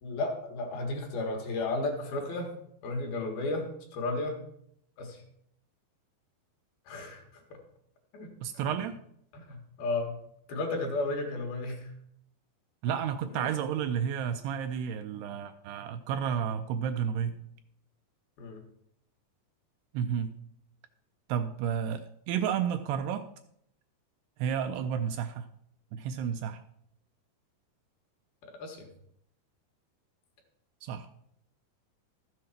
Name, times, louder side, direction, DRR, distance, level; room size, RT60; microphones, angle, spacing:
voice 1, 0.0-2.5 2.8-3.7 3.9-4.4 5.0-5.2 6.9-7.6 8.1-8.3 8.5-8.6 9.3-10.1 10.5-11.9 13.3-13.5 18.4-18.6 28.4-28.9, left 2 dB, 60° left, 2 dB, 3.4 m, -33 dB
voice 2, 8.4-9.0 12.8-17.3 19.9-20.3 21.3-23.3 24.4-25.5 25.9-26.6 30.8-31.1, right 8 dB, 80° right, 8 dB, 2.5 m, -31 dB
13.5 x 7.8 x 5.9 m, 0.71 s
omnidirectional pair, 5.1 m